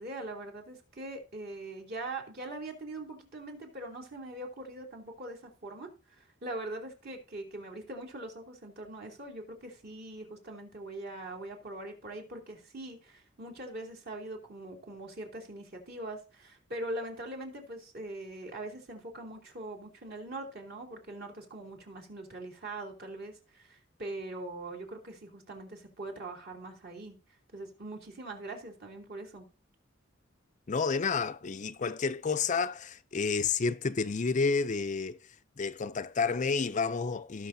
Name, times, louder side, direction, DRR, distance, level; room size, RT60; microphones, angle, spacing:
voice 1, 0.0-27.2 27.5-29.5, right 2 dB, 55° right, 2.7 m, -42 dB
voice 2, 30.7-35.2 35.6-37.5, left 5 dB, 40° left, 0.5 m, -30 dB
17.5 x 6.1 x 2.7 m
head